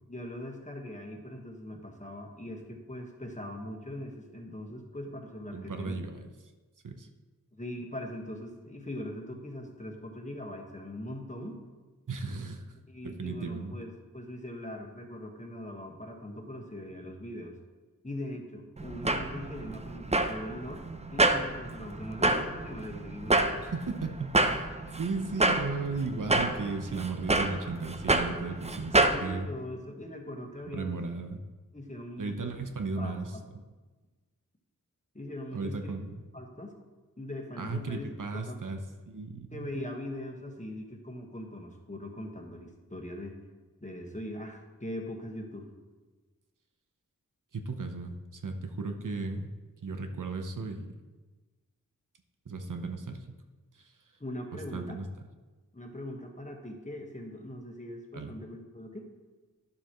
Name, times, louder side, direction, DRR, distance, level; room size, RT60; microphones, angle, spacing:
voice 1, 0.1-6.0 7.5-11.6 12.9-17.6 18.0-20.8 21.1-23.7 29.1-31.0 31.7-32.5 33.0-33.4 35.1-35.9 36.3-36.8 37.2-38.1 38.5-38.6 39.5-43.4 43.8-45.7 54.2-55.0 55.7-59.1, left 1 dB, 20° left, 1 dB, 1.4 m, -41 dB
voice 2, 5.5-6.2 6.8-7.1 12.1-12.6 13.0-13.7 23.6-24.7 25.0-29.5 30.7-31.4 32.2-33.6 35.5-36.2 37.6-38.8 39.1-39.7 47.5-49.5 49.8-51.0 52.5-53.2 54.7-55.1 58.1-58.3, right 3 dB, 65° right, 5 dB, 0.9 m, -35 dB
sound 1, 18.8-29.2, right 2 dB, 20° right, 0.6 m, -28 dB
11.5 x 6.9 x 3.1 m, 1.3 s
wide cardioid pair, 50°, 34 cm